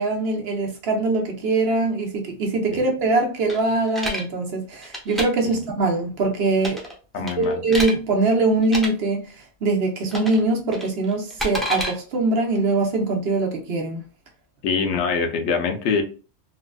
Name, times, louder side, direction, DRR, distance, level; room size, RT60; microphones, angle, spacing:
voice 1, 0.0-6.8 7.2-9.2 9.6-14.0, right 3 dB, 65° right, 1.0 m, -22 dB
sound 1, 3.5-4.2 4.8-5.3 6.6-6.9 7.3-7.9 8.6-8.9 10.1-10.4 10.7-11.9, equal, ahead, 0.5 m, -28 dB
voice 2, 7.1-7.6 14.6-16.0, left 5 dB, 90° left, 0.9 m, -23 dB
3.4 x 2.4 x 2.2 m
omnidirectional pair, 1.1 m